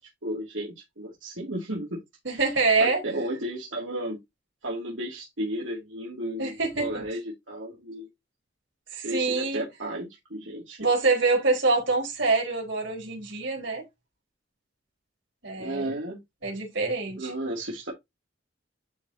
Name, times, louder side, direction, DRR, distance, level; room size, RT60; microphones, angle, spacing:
voice 1, 0.2-2.0 2.3-2.4 2.8-4.2 4.6-8.1 9.0-10.9 15.6-16.2 17.2-17.9, right 1 dB, 90° right, 2.5 m, -33 dB
voice 2, 2.2-3.0 6.4-7.0 8.9-9.6 10.8-13.9 15.4-15.9 16.4-17.3, right 3 dB, 70° right, 4.4 m, -25 dB
11.0 x 4.8 x 2.8 m
head